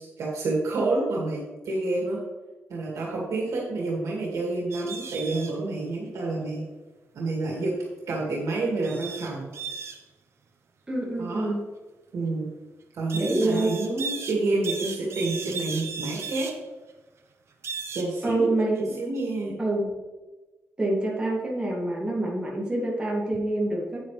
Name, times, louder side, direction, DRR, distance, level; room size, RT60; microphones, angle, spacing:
voice 1, 0.0-2.2 2.7-6.6 7.1-7.7 8.1-9.5 11.2-11.5 12.1-12.5 12.9-16.5 17.9-18.5 18.8-19.6, right 2 dB, 90° right, -3 dB, 2.3 m, -28 dB
sound 1, 4.7-5.6 8.8-10.0 13.1-14.4 14.6-16.6 17.6-18.1 18.4-18.8, right 5 dB, 60° right, 1.0 m, -36 dB
voice 2, 10.9-11.6 13.1-13.7 18.2-18.9 19.6-19.9 20.8-24.0, right 2 dB, 20° right, -4 dB, 2.3 m, -26 dB
9.2 x 8.6 x 3.4 m, 1.2 s
wide cardioid pair, 155°, 5 cm